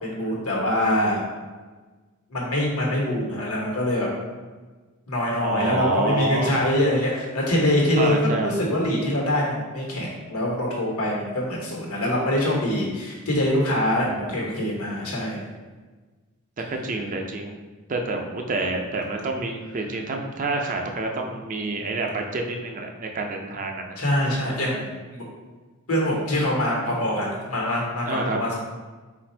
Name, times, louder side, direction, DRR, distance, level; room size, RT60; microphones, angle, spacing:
voice 1, 0.0-1.2 2.3-4.1 5.1-15.4 24.0-25.2 25.9-28.6, left 1 dB, 85° left, -3 dB, 1.2 m, -24 dB
voice 2, 5.4-6.6 8.0-8.5 14.0-14.8 16.7-17.6 17.9-24.0 28.0-28.4, right 2 dB, 35° right, 2 dB, 0.4 m, -28 dB
4.0 x 2.5 x 4.3 m, 1.3 s
head